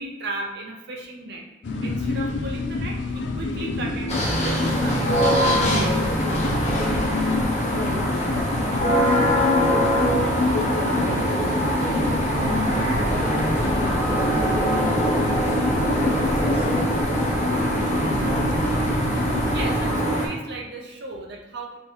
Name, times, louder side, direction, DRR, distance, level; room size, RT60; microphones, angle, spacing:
voice 1, 0.0-1.4 1.8-4.1 4.4-6.2 19.5-21.8, right 2 dB, 60° right, 1 dB, 0.6 m, -35 dB
sound 1, 1.6-19.6, left 2 dB, 65° left, 0.5 m, -27 dB
sound 2, 4.1-20.3, equal, 35° left, 1.0 m, -23 dB
voice 2, 7.7-10.3 10.7-12.7 13.1-14.8 15.2-15.6 15.9-17.6 18.0-19.1, equal, 10° left, -6 dB, 0.9 m, -34 dB
Motor vehicle (road), 12.0-19.9, equal, 10° right, 0.7 m, -33 dB
3.4 x 2.8 x 4.5 m, 1.0 s
head